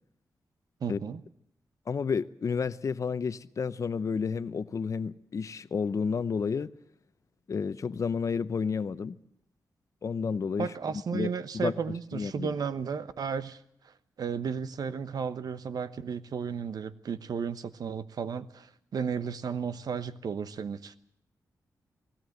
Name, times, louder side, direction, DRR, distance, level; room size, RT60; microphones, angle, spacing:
voice 1, 0.8-1.2 10.6-13.6 14.2-21.0, right 6 dB, 70° right, 1.1 m, -34 dB
voice 2, 1.9-6.7 7.5-9.2 10.0-10.7 11.1-12.5, left 5 dB, 50° left, 0.8 m, -31 dB
20.0 x 17.0 x 8.0 m
wide cardioid pair, 105°, 7 cm